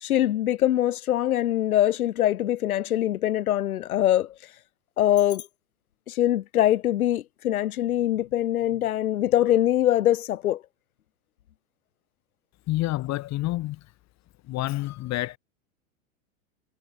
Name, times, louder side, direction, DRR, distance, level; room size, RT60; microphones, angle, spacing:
voice 1, 0.0-4.3 5.0-5.4 6.1-10.6, left 12 dB, 85° left, 1.6 m, -23 dB
voice 2, 12.7-13.9 14.5-15.4, left 17 dB, 40° left, 3.1 m, -28 dB
hypercardioid pair, 120°, 42 cm